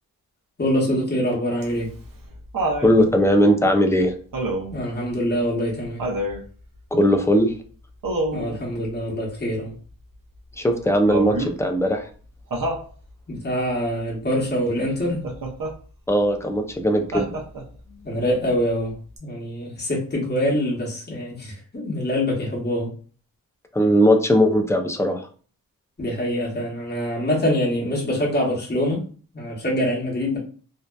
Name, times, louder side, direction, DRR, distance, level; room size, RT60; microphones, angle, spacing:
voice 1, 0.6-1.9 4.7-6.0 8.3-9.7 13.3-15.2 18.0-18.9 19.2-22.9 26.0-29.0 29.3-30.4, equal, 25° left, 0.9 m, -24 dB
Laughter, 1.6-2.9 4.3-4.8 6.0-6.4 8.0-8.6 11.1-11.6 12.5-12.9 15.2-15.7 17.1-17.8 19.2-19.3, right 1 dB, 65° right, 0.7 m, -27 dB
voice 2, 2.8-4.1 6.9-7.5 10.6-12.0 16.1-17.3 23.7-25.2, equal, 10° left, 0.4 m, -19 dB
2.6 x 2.2 x 2.2 m
wide cardioid pair, 85°, 36 cm